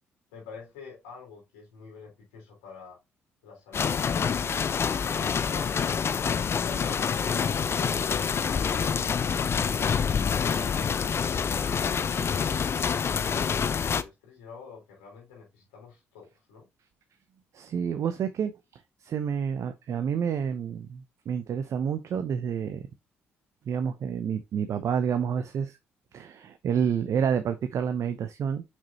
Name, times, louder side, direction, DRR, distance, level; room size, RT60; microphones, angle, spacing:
voice 1, 0.3-3.0 3.4-5.7 6.3-11.5 12.2-16.7, left 5 dB, 80° left, 3.6 m, -48 dB
Rain in Kathmandu, 3.7-14.0, left 6 dB, 45° left, 0.6 m, -27 dB
voice 2, 17.5-18.5 19.0-22.8 23.7-25.8 26.1-28.6, right 7 dB, 55° right, 0.7 m, -29 dB
6.3 x 6.0 x 2.8 m
hypercardioid pair, 50°, 6 cm